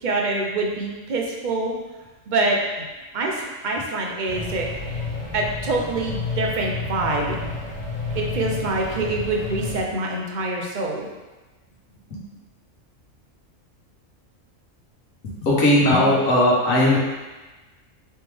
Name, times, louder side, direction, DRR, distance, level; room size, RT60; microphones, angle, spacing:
voice 1, 0.0-1.8 2.3-2.9 3.1-5.0 5.3-7.4 8.2-11.1, right 2 dB, 45° right, -1 dB, 0.7 m, -25 dB
sound 1, 4.3-9.8, left 3 dB, 15° right, 1.2 m, -30 dB
voice 2, 15.4-17.0, left 1 dB, 90° left, -5 dB, 1.5 m, -18 dB
4.3 x 3.2 x 3.4 m, 1.2 s
omnidirectional pair, 1.3 m